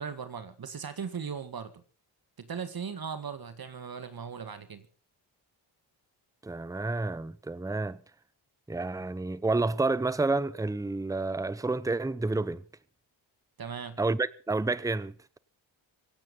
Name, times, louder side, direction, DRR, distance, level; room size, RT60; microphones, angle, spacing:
voice 1, 0.0-1.7 2.4-4.9 13.6-14.0, right 6 dB, 45° right, 2.0 m, -38 dB
voice 2, 6.4-8.0 8.7-12.6 14.0-15.4, right 3 dB, 5° right, 0.8 m, -30 dB
24.5 x 9.2 x 5.5 m
cardioid pair, 70°, 48 cm